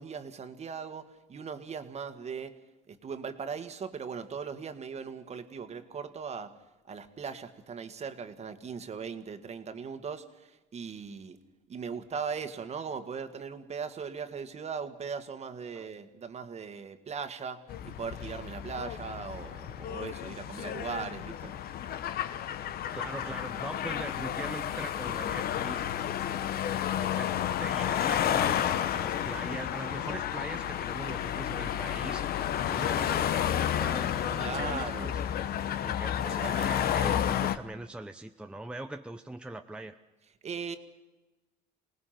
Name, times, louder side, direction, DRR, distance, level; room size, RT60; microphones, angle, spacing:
voice 1, 0.0-2.6 2.9-6.6 6.9-11.4 11.7-21.5 34.4-35.1 36.4-36.8 40.4-40.8, right 6 dB, 40° right, 9 dB, 1.9 m, -39 dB
sound 1, 17.7-37.6, left 10 dB, 65° left, 1.1 m, -31 dB
voice 2, 22.9-25.8 27.0-32.3 32.7-35.2 35.8-40.0, right 2 dB, 5° right, 6 dB, 0.9 m, -41 dB
27.0 x 19.0 x 6.0 m, 1.1 s
cardioid pair, 110°, 17 cm